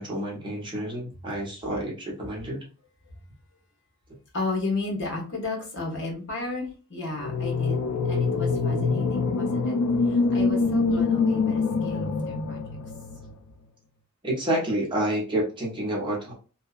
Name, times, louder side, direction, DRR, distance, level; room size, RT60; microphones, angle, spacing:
voice 1, 0.0-2.6 14.2-16.3, right 1 dB, 20° right, -3 dB, 0.8 m, -29 dB
voice 2, 4.3-9.8 10.0-12.6, left 2 dB, 55° left, -1 dB, 1.0 m, -33 dB
sound 1, 7.2-13.3, left 4 dB, 80° left, 0.4 m, -25 dB
2.6 x 2.2 x 2.4 m, 0.36 s
head